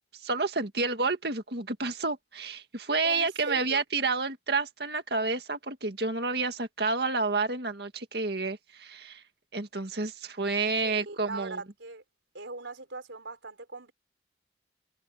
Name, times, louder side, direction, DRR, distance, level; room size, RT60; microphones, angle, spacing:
voice 1, 0.2-9.2 9.5-11.6, right 3 dB, 60° right, 2.0 m, -30 dB
voice 2, 3.0-3.8 10.8-12.0 12.3-13.9, right 3 dB, 90° right, 4.3 m, -40 dB
head